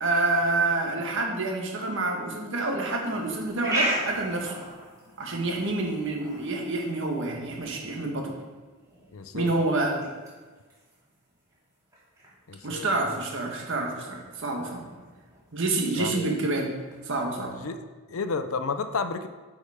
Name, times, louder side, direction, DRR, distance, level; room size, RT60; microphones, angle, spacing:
voice 1, 0.0-4.6 5.2-8.3 9.3-10.1 12.6-14.9 15.5-16.7 17.0-17.5, right 2 dB, 60° right, 1 dB, 1.4 m, -28 dB
sound 1, 2.9-17.0, right 1 dB, 15° right, 2.5 m, -38 dB
voice 2, 9.1-9.5 12.5-13.2 16.0-16.3 17.6-17.8 18.1-19.3, left 4 dB, 75° left, 10 dB, 0.6 m, -32 dB
8.6 x 5.0 x 4.9 m, 1.4 s
head